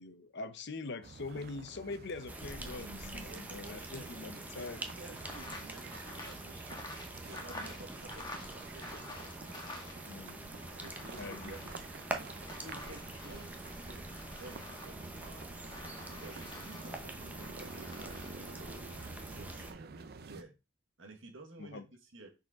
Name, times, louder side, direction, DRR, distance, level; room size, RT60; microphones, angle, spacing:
voice 1, 0.0-4.8 10.0-10.5 11.1-11.5 21.6-21.8, left 3 dB, 60° left, 0.7 m, -43 dB
sound 1, 1.0-20.4, right 3 dB, 55° right, 0.6 m, -50 dB
sound 2, 2.3-19.7, right 1 dB, 10° right, 0.7 m, -45 dB
voice 2, 3.2-6.8 7.2-9.1 10.8-15.5 16.0-20.6 21.0-22.3, right 2 dB, 75° right, 1.5 m, -53 dB
sound 3, 5.2-10.2 10.5-19.1, left 2 dB, 20° left, 1.3 m, -50 dB
6.3 x 4.3 x 3.7 m
head